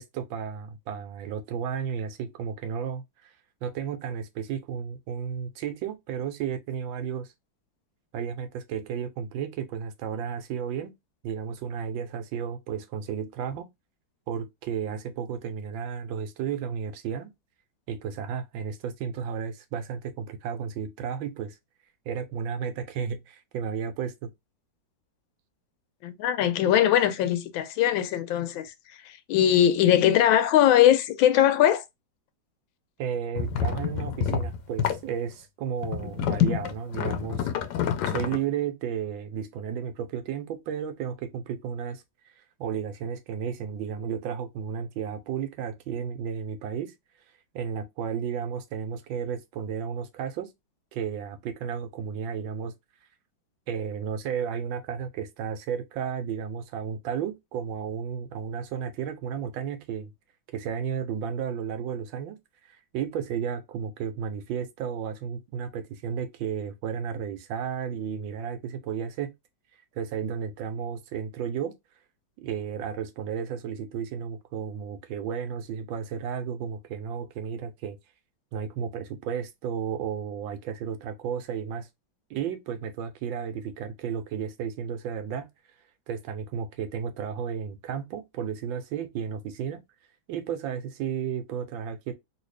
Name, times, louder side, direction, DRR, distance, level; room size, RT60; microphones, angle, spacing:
voice 1, 0.0-3.3 3.6-7.3 8.1-10.9 11.2-13.7 14.3-17.3 17.9-21.6 22.1-24.3 33.0-37.5 38.0-42.3 42.6-46.9 47.5-50.5 50.9-52.7 53.7-60.1 60.5-62.4 62.7-69.3 69.9-71.7 72.4-78.0 78.5-81.9 82.3-85.5 86.1-89.8 90.3-92.1, right 7 dB, 85° right, 1.4 m, -33 dB
voice 2, 26.0-31.8, left 11 dB, 90° left, 1.4 m, -21 dB
sound 1, 33.3-35.1 35.8-38.4, left 8 dB, 75° left, 1.1 m, -27 dB
3.2 x 2.7 x 3.2 m
omnidirectional pair, 2.1 m